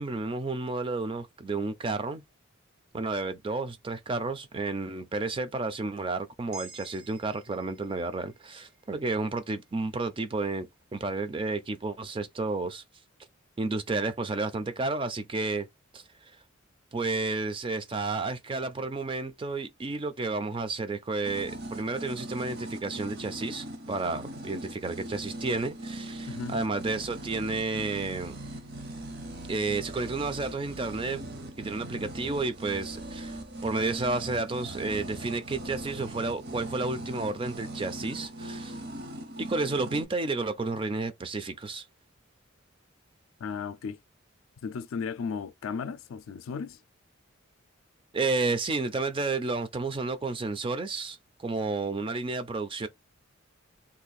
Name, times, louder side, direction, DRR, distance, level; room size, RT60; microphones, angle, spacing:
voice 1, 0.0-2.2 2.9-10.7 10.9-12.8 13.6-15.7 15.9-16.0 16.9-28.3 29.5-31.2 31.6-38.8 39.4-41.8 48.1-52.9, right 3 dB, 25° right, 0.4 m, -31 dB
sound 1, 6.5-10.8, right 2 dB, 85° right, 0.8 m, -52 dB
sound 2, 21.2-40.0, right 1 dB, 50° right, 0.7 m, -40 dB
voice 2, 26.3-26.6 43.4-44.0 44.6-46.8, left 5 dB, 75° left, 0.4 m, -35 dB
2.7 x 2.4 x 3.9 m
head